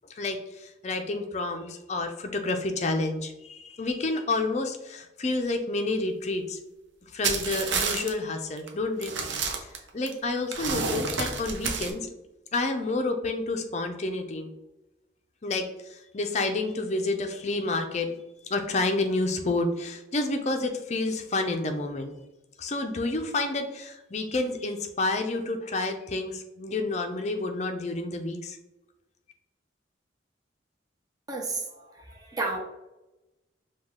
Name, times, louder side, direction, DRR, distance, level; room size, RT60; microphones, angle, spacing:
voice 1, 0.1-6.6 7.1-9.2 9.5-9.7 9.9-12.1 12.5-14.5 15.4-18.1 18.5-22.1 22.6-28.6, left 2 dB, 35° left, 5 dB, 0.5 m, -29 dB
sound 1, 7.2-8.1 8.6-8.7 9.0-10.1 10.5-11.9, right 5 dB, 75° right, 0.6 m, -29 dB
voice 2, 31.3-32.6, right 3 dB, 20° right, 0 dB, 0.6 m, -32 dB
5.2 x 2.3 x 3.6 m, 0.98 s
head